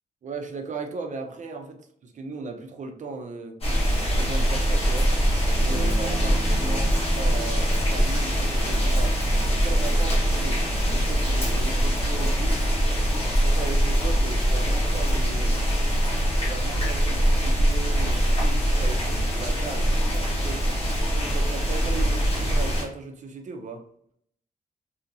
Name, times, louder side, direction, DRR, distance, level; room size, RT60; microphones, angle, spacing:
voice 1, 0.2-3.6 3.9-5.1 5.6-9.2 9.5-12.6 13.2-15.6 16.4-20.7 21.1-23.9, right 4 dB, 55° right, 0.5 m, -37 dB
sound 1, 3.6-22.8, equal, 40° left, 1.3 m, -23 dB
sound 2, 5.7-14.5, left 2 dB, 60° left, 0.7 m, -42 dB
2.7 x 2.7 x 2.5 m
wide cardioid pair, 135°, 15 cm